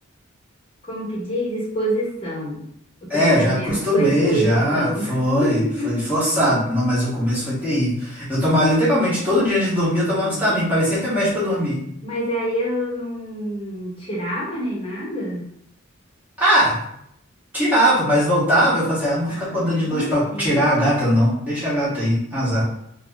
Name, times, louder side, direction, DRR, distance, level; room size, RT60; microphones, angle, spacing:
voice 1, 0.8-2.7 3.0-5.1 5.4-6.0 10.0-10.6 12.0-15.5 19.3-20.7, right 1 dB, 25° left, -4 dB, 1.0 m, -27 dB
voice 2, 3.1-11.8 16.4-16.8 17.5-22.6, equal, 10° right, -9 dB, 1.1 m, -20 dB
2.8 x 2.0 x 3.4 m, 0.75 s
head